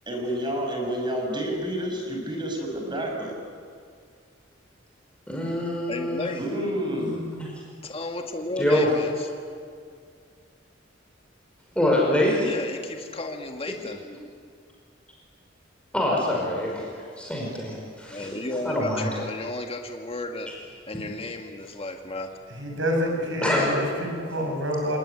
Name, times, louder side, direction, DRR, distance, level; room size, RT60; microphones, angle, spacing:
voice 1, 0.1-3.3 6.4-7.2, equal, 25° right, 1 dB, 5.7 m, -29 dB
voice 2, 5.3-6.3 7.0-7.5 8.6-8.9 11.7-12.5 14.0-14.1 15.9-18.3 18.6-19.1 23.4-23.7, left 1 dB, 5° left, -2 dB, 5.2 m, -25 dB
voice 3, 5.9-6.4 7.8-9.3 12.4-14.0 18.1-20.5 20.9-22.3, left 2 dB, 30° left, 3 dB, 1.9 m, -33 dB
voice 4, 22.5-25.0, equal, 75° right, 2 dB, 6.4 m, -27 dB
28.5 x 19.5 x 10.0 m, 2.2 s
head